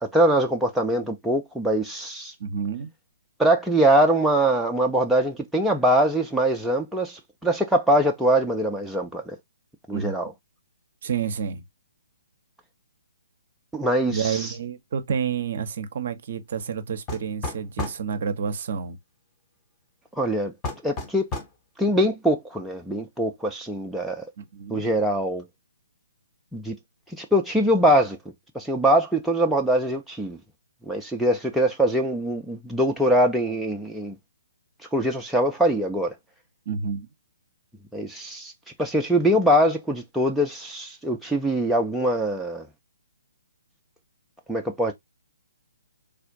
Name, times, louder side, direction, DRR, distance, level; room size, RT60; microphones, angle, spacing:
voice 1, 0.0-2.3 3.4-9.4 9.9-10.3 13.7-14.5 20.2-20.5 20.8-21.2 21.8-24.2 24.7-25.4 26.5-26.8 27.1-28.2 28.5-30.4 30.9-34.2 34.9-36.2 37.9-38.5 38.8-42.7 44.5-44.9, right 1 dB, ahead, 0.4 m, -23 dB
voice 2, 2.4-2.9 9.9-10.2 11.0-11.6 14.1-19.0 24.4-24.8 36.7-37.1, right 6 dB, 45° right, 0.6 m, -29 dB
sound 1, 17.1-18.0 20.6-21.6, left 2 dB, 15° left, 0.8 m, -32 dB
3.4 x 2.5 x 3.7 m
figure-of-eight pair, 130°, 0 cm